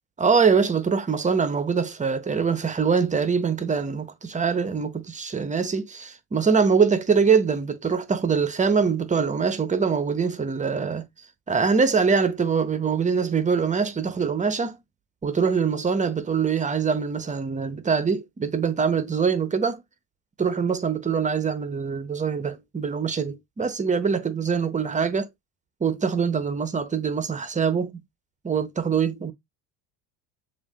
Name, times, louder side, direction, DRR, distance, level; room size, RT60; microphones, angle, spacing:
voice 1, 0.2-11.1 11.5-14.8 15.2-19.8 20.4-25.3 25.8-27.9 28.4-29.3, right 5 dB, 15° right, 0.6 m, -23 dB
7.1 x 2.5 x 2.3 m
hypercardioid pair, 80°, 49 cm